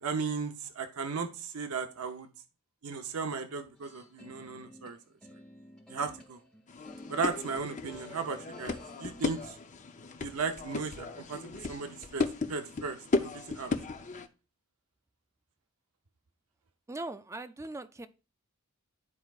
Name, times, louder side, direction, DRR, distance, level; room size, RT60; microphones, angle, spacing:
voice 1, 0.0-2.3 2.8-5.0 5.9-6.4 7.1-9.6 10.2-12.2 12.5-13.7, right 5 dB, 85° right, 0.8 m, -36 dB
sound 1, 3.8-9.5, left 1 dB, 5° left, 1.1 m, -53 dB
sound 2, 6.7-14.3, left 3 dB, 35° left, 0.6 m, -36 dB
voice 2, 16.9-18.1, right 2 dB, 15° right, 0.4 m, -40 dB
12.5 x 4.6 x 2.4 m
head